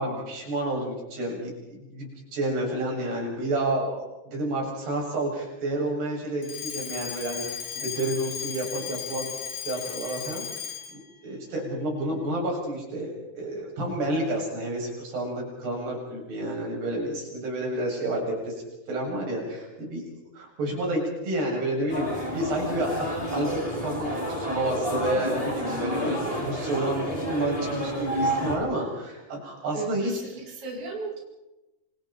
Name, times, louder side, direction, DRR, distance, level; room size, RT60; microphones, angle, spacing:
voice 1, 0.0-1.5 1.8-9.3 9.6-10.5 11.2-18.5 18.9-30.1, right 1 dB, 80° right, -1 dB, 9.6 m, -30 dB
Alarm, 6.4-11.1, left 8 dB, 60° left, 2.6 m, -36 dB
sound 1, 21.9-28.6, equal, 15° left, 6.7 m, -30 dB
voice 2, 26.5-26.8 29.7-31.2, right 4 dB, 45° right, -2 dB, 7.1 m, -36 dB
29.5 x 28.5 x 4.5 m, 1.0 s
omnidirectional pair, 4.6 m